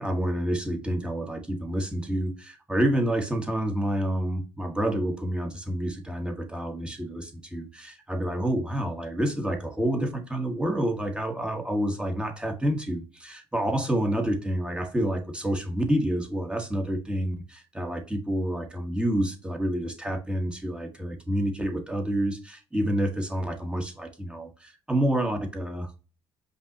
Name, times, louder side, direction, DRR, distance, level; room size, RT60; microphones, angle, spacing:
voice 1, 0.0-26.1, right 1 dB, 10° right, 1.2 m, -28 dB
5.3 x 2.4 x 3.8 m
supercardioid pair, 75°, 11 cm